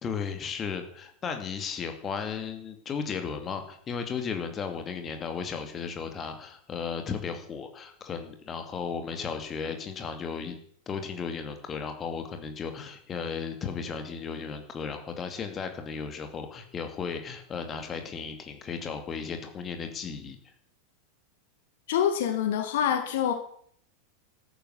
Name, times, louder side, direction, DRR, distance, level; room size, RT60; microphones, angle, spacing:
voice 1, 0.0-10.6 10.9-20.4, left 6 dB, 25° left, 6 dB, 2.5 m, -35 dB
voice 2, 21.9-23.3, left 9 dB, 55° left, 7 dB, 2.0 m, -26 dB
13.5 x 10.5 x 8.1 m, 0.62 s
figure-of-eight pair, 90°, 0 cm